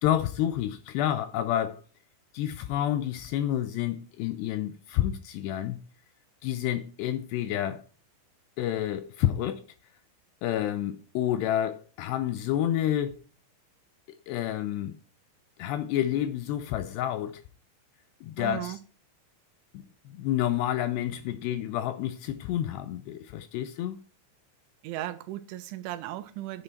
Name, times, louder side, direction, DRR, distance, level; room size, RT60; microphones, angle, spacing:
voice 1, 0.0-1.8 2.3-5.8 6.4-7.8 8.6-9.6 10.4-13.2 14.1-15.0 15.6-17.4 18.2-18.8 19.7-24.0, left 11 dB, 80° left, 2.5 m, -29 dB
voice 2, 18.4-18.8 24.8-26.6, right 14 dB, 90° right, 3.2 m, -36 dB
8.9 x 8.7 x 4.5 m
omnidirectional pair, 5.5 m